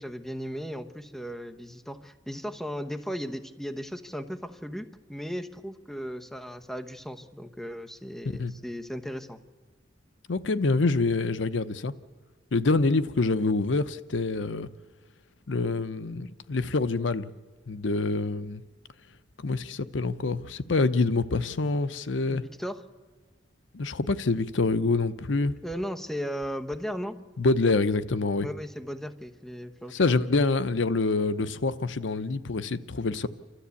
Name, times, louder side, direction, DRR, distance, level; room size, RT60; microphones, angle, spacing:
voice 1, 0.0-9.4 22.3-22.8 25.6-27.2 28.4-30.2, equal, ahead, 1.0 m, -36 dB
voice 2, 10.3-11.9 12.5-14.7 15.5-17.3 17.7-18.6 19.4-22.4 23.7-25.5 27.4-28.5 29.9-33.3, left 3 dB, 80° left, 0.7 m, -26 dB
29.0 x 13.0 x 8.4 m
head